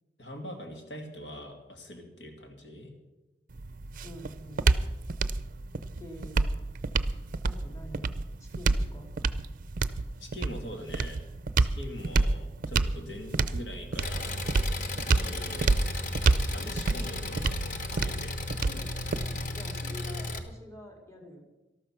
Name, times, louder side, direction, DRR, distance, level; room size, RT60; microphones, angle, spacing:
voice 1, 0.2-2.9 10.2-11.2 11.6-14.3 15.1-15.7 16.5-17.8 18.0-18.3, left 1 dB, 75° left, 3 dB, 2.3 m, -43 dB
sound 1, 3.5-19.5, right 3 dB, 50° right, 0.5 m, -29 dB
voice 2, 4.0-4.7 6.0-6.5 7.4-8.1 8.4-9.1 17.9-18.2 18.6-21.5, left 1 dB, 15° left, 2 dB, 2.2 m, -46 dB
Engine, 14.0-20.4, left 2 dB, 45° left, 1.2 m, -35 dB
13.0 x 12.5 x 5.9 m, 1.0 s
head